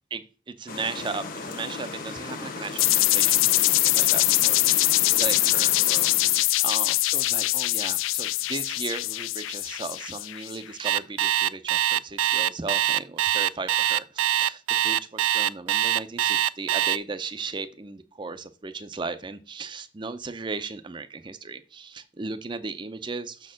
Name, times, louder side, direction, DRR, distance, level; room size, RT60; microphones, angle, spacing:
voice 1, 0.5-23.5, right 4 dB, 25° right, 11 dB, 0.4 m, -36 dB
sound 1, 0.7-6.5, left 4 dB, 45° left, 1.1 m, -37 dB
sound 2, 2.8-10.6, left 19 dB, 80° left, 0.3 m, -23 dB
Alarm, 10.8-17.0, right 12 dB, 85° right, 0.3 m, -23 dB
6.5 x 4.3 x 6.2 m, 0.37 s
head